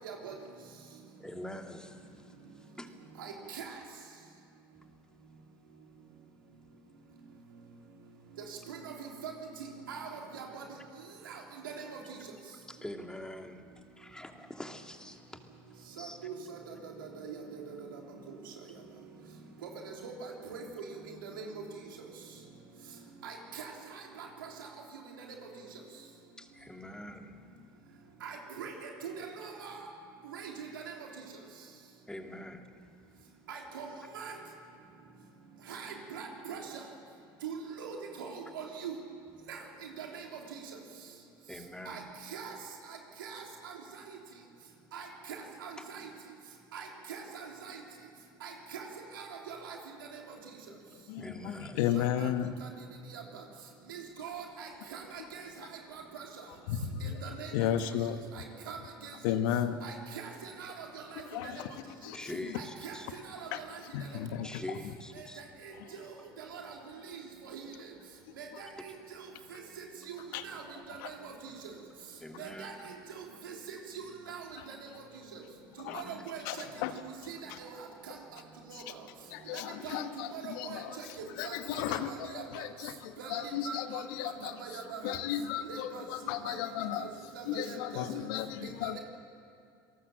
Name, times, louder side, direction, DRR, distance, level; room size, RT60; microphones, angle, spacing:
voice 1, 1.2-2.9 12.7-16.2 26.4-27.4 32.1-32.7 41.5-42.1 45.8-45.9 50.7-50.8 51.2-51.8 57.3-57.4 62.1-63.1 64.4-65.4 72.2-72.9 75.9-76.3, left 1 dB, 5° left, 4 dB, 2.5 m, -45 dB
voice 2, 3.2-3.7 8.7-8.8 9.2-9.3 9.9-10.6 11.3-11.4 11.6-11.8 16.0-17.6 20.0-20.6 21.4-21.5 23.2-23.7 28.2-28.7 29.0-29.8 30.3-30.8 33.5-33.9 34.1-34.3 35.7-36.6 37.4-38.9 39.5-39.6 40.0-40.2 41.9-42.0 42.3-42.5 43.2-43.4 44.9-45.1 45.6-45.7 46.7-47.8 48.4-48.8 49.2-49.8 53.1-53.2 53.9-55.0 55.3-55.5 57.0-57.5 58.4-58.8 59.8-59.9 60.6-61.0 62.6-63.0 63.4-63.5 66.5-66.7 67.5-67.6 68.4-68.5 69.5-69.6 70.1-70.6 71.0-71.3 72.4-72.7 73.4-74.4 75.9-76.4 77.3-77.7 78.1-78.2 79.8-80.0 80.4-80.8 81.4-81.6 81.9-82.4 83.2-83.4 83.7-85.2 85.7-86.0 86.5-86.6 87.0-87.1 87.4-88.0 88.8-89.0, right 6 dB, 90° right, 0 dB, 3.4 m, -42 dB
voice 3, 50.9-52.6 56.7-57.2 57.5-58.2 59.2-59.8 61.2-62.6 63.4-63.6 63.9-64.6 65.8-65.9 68.5-68.6 70.3-70.5 70.9-71.1 74.6-74.7 75.8-76.0 76.4-76.9 77.5-77.6 78.9-79.0 79.3-87.1 87.4-89.0, left 10 dB, 75° left, 9 dB, 1.3 m, -35 dB
27.5 x 18.5 x 7.6 m, 2.4 s
hypercardioid pair, 75°, 11 cm